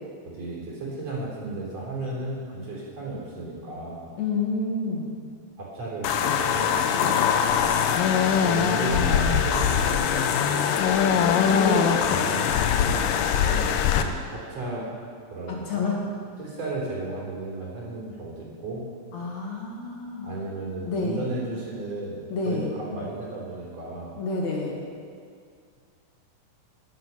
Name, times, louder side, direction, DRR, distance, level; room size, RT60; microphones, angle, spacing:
voice 1, 0.2-4.1 5.6-6.8 8.2-10.7 13.4-14.9 15.3-15.9 16.4-18.8 20.2-24.2, right 2 dB, 50° right, -4 dB, 4.4 m, -34 dB
voice 2, 4.2-5.1 6.9-7.3 11.2-12.4 12.8-13.1 15.5-16.1 19.1-20.3 20.8-21.3 22.3-22.7 24.2-24.8, left 3 dB, 60° left, -2 dB, 2.9 m, -29 dB
sound 1, 6.0-14.0, left 8 dB, 85° left, 2.5 m, -22 dB
17.0 x 11.5 x 5.6 m, 2.2 s
omnidirectional pair, 3.9 m